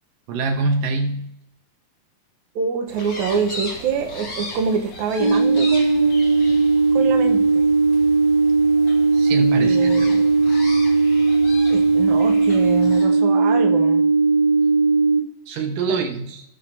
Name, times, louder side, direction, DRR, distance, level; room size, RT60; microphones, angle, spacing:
voice 1, 0.3-1.3 9.1-10.1 15.5-16.4, right 3 dB, 90° right, 4 dB, 2.8 m, -24 dB
voice 2, 2.6-7.7 9.6-10.3 11.7-14.1 15.9-16.0, right 6 dB, 70° right, 4 dB, 2.2 m, -26 dB
sound 1, 2.9-13.1, left 1 dB, 40° left, 2.1 m, -37 dB
sound 2, 5.2-15.2, right 3 dB, 65° left, 1.0 m, -17 dB
18.0 x 6.4 x 2.7 m, 0.77 s
omnidirectional pair, 3.7 m